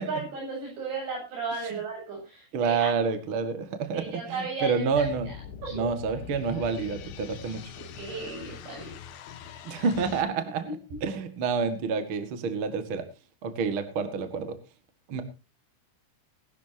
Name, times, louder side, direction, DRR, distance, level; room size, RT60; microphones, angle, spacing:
voice 1, 0.0-2.9 3.9-5.3 5.6-5.9 7.8-8.9 10.6-10.7, right 4 dB, 60° right, -1 dB, 10.0 m, -35 dB
voice 2, 2.5-5.3 5.7-7.7 9.6-10.7 11.0-13.1 13.4-14.6 15.1-15.2, right 5 dB, 80° right, 8 dB, 1.1 m, -28 dB
sound 1, 4.9-10.2, left 7 dB, 75° left, 3.4 m, -43 dB
21.5 x 12.0 x 2.9 m, 0.30 s
omnidirectional pair, 5.7 m